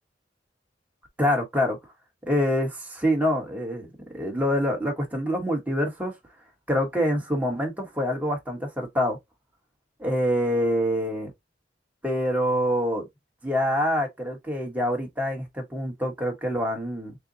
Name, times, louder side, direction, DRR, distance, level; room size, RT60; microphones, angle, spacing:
voice 1, 1.2-1.8 2.3-3.9 4.1-6.1 6.7-9.2 10.0-11.3 12.0-13.0 13.4-17.2, equal, 10° right, 1.2 m, -25 dB
6.6 x 2.2 x 2.7 m
head